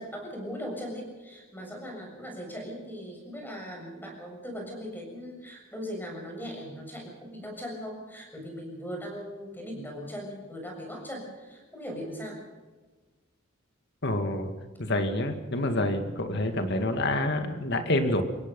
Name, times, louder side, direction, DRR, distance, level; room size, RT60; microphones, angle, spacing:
voice 1, 0.0-12.4, equal, 10° left, 1 dB, 7.1 m, -39 dB
voice 2, 14.0-14.5 14.8-18.2, left 1 dB, 55° left, 7 dB, 2.2 m, -27 dB
29.5 x 16.5 x 5.5 m, 1.3 s
head